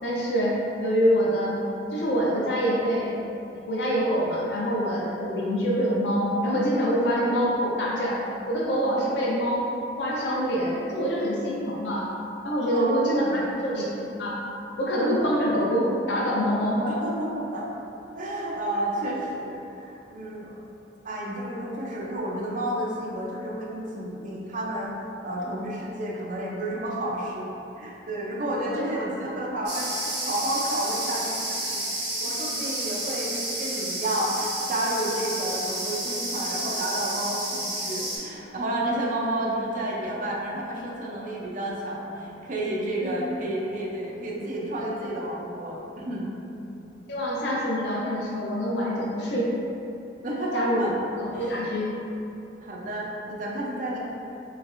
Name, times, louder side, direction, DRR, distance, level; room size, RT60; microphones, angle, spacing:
voice 1, 0.0-1.6 1.9-3.2 3.7-8.2 8.5-9.7 10.0-13.9 14.2-14.4 14.8-16.8 28.7-29.1 43.0-43.2 47.1-49.5 50.5-50.9 51.4-51.9, equal, 70° left, -5 dB, 0.5 m, -25 dB
voice 2, 12.6-13.4 16.7-17.7 18.2-20.6 21.0-24.9 25.2-31.9 32.2-46.3 50.2-51.0 51.3-51.5 52.6-54.0, right 1 dB, 50° right, -4 dB, 0.5 m, -31 dB
sound 1, 29.7-38.2, right 1 dB, 85° right, 1.2 m, -31 dB
3.2 x 3.1 x 2.5 m, 2.9 s
head